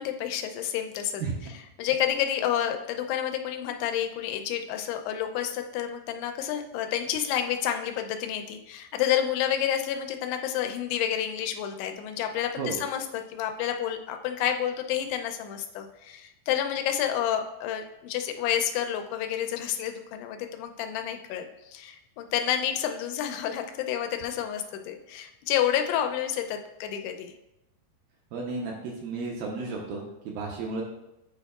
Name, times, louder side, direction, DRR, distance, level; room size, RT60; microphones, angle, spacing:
voice 1, 0.0-1.2 1.8-27.3, left 10 dB, 85° left, 5 dB, 2.6 m, -29 dB
voice 2, 28.3-30.8, right 4 dB, 80° right, -1 dB, 2.2 m, -33 dB
9.3 x 4.5 x 2.3 m, 0.91 s
omnidirectional pair, 4.7 m